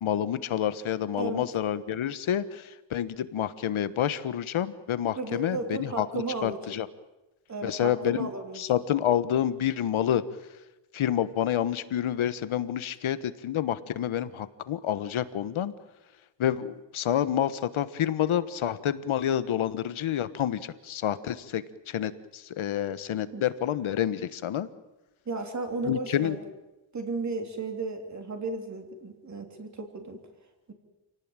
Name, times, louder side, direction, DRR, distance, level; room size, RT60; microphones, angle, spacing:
voice 1, 0.0-6.9 7.6-8.3 8.6-10.2 10.9-15.7 16.4-24.7 25.9-26.4, left 10 dB, 85° left, 14 dB, 1.4 m, -28 dB
voice 2, 1.1-1.4 5.2-6.7 7.5-8.6 23.3-23.5 25.3-26.5 26.9-30.2, right 3 dB, 35° right, 5 dB, 3.4 m, -34 dB
28.0 x 18.0 x 9.0 m, 1.0 s
wide cardioid pair, 170°, 47 cm